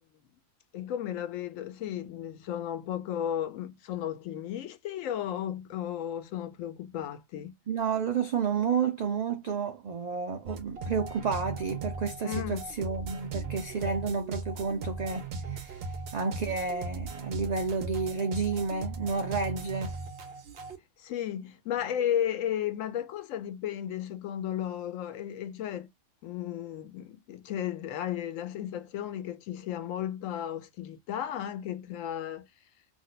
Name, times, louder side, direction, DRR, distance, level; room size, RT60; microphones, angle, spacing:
voice 1, 0.7-7.5 12.2-12.7 21.0-25.9 26.2-32.5, left 10 dB, 90° left, 1.0 m, -34 dB
voice 2, 7.7-15.9 16.1-19.9, right 5 dB, 85° right, 0.3 m, -31 dB
sound 1, 10.5-20.8, right 3 dB, 60° right, 0.7 m, -38 dB
2.5 x 2.2 x 3.8 m
omnidirectional pair, 1.3 m